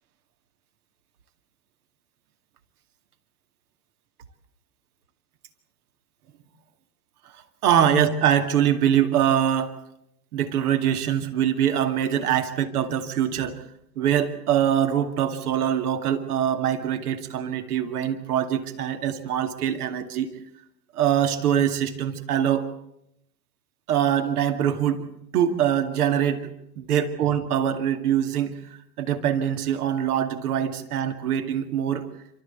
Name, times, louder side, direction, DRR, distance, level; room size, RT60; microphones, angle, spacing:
voice 1, 7.6-9.7 10.3-13.6 14.0-20.3 21.0-22.7 23.9-25.1 25.3-26.5 26.8-28.5 29.0-32.0, right 9 dB, 65° right, 7 dB, 2.4 m, -23 dB
28.5 x 13.5 x 8.2 m, 0.79 s
hypercardioid pair, 90°, 48 cm